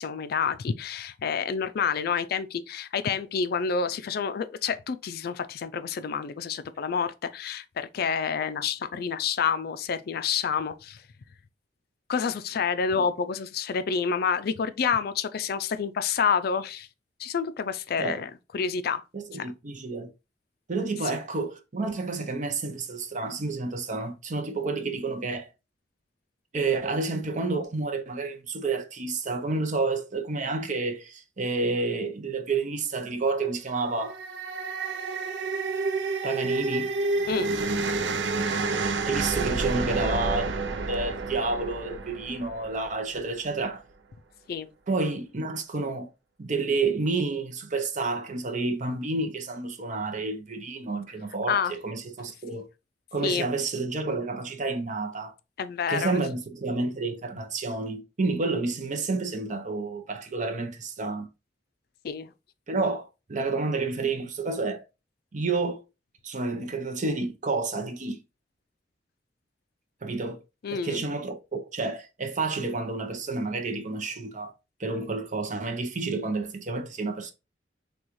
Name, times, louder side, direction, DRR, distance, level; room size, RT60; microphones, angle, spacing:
voice 1, 0.0-11.0 12.1-16.9 17.2-19.0 19.3-19.5 37.3-37.5 44.5-44.7 51.5-51.7 53.2-53.5 55.6-56.2 62.0-62.3 70.6-71.0, left 6 dB, 60° left, 0.4 m, -28 dB
voice 2, 19.1-20.1 20.7-25.5 26.5-34.2 36.2-36.9 39.1-40.6 40.9-43.8 44.9-46.1 46.4-52.7 53.1-55.3 55.9-61.3 62.7-64.8 65.3-65.8 66.2-68.2 70.0-70.4 70.7-74.5 74.8-77.3, right 3 dB, 45° right, 0.7 m, -30 dB
sound 1, 33.9-43.2, right 3 dB, 85° right, 0.5 m, -29 dB
6.1 x 2.3 x 3.0 m
head